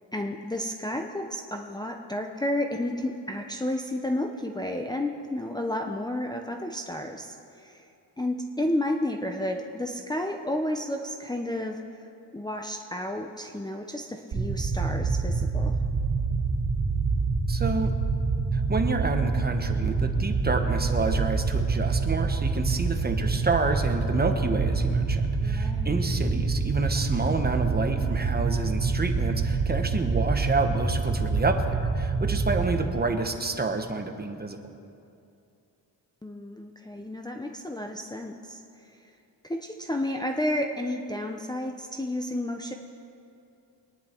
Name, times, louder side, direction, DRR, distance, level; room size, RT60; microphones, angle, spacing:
voice 1, 0.1-7.8 8.2-11.8 12.3-15.7 25.4-26.0 36.2-39.1 39.4-42.7, left 1 dB, 10° left, 1 dB, 0.7 m, -31 dB
sound 1, 14.3-32.8, right 4 dB, 70° right, 2.8 m, -26 dB
voice 2, 17.5-17.9 18.5-34.6, right 3 dB, 20° right, 5 dB, 1.2 m, -29 dB
23.5 x 10.0 x 4.5 m, 2.6 s
cardioid pair, 110°, 43 cm